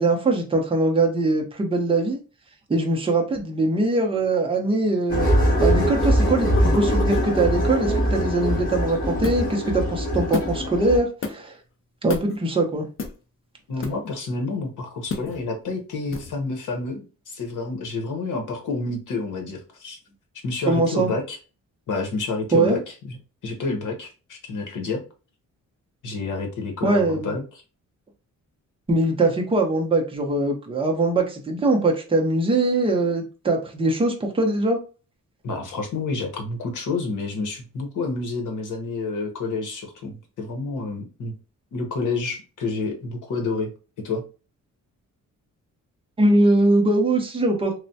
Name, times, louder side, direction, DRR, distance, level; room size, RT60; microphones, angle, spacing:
voice 1, 0.0-2.2 2.7-5.3 5.6-11.5 12.0-12.9 20.7-21.1 22.5-22.8 26.8-27.4 28.9-34.8 46.2-47.8, right 2 dB, 15° right, 2 dB, 0.5 m, -22 dB
sound 1, 5.1-11.0, equal, 25° left, 1.1 m, -22 dB
sound 2, 6.5-7.3 9.2-9.5 10.3-10.6 11.2-11.3 12.1-12.4 13.0-13.1 13.8-14.1 15.1-15.4 16.1-16.3, left 3 dB, 45° left, 0.5 m, -29 dB
voice 2, 13.7-20.0 20.4-21.4 21.9-23.2 23.4-25.0 26.0-27.6 35.4-41.3 41.7-43.7 44.0-44.2, left 3 dB, 75° left, 4 dB, 0.9 m, -29 dB
3.1 x 2.1 x 2.7 m, 0.34 s
wide cardioid pair, 170°, 31 cm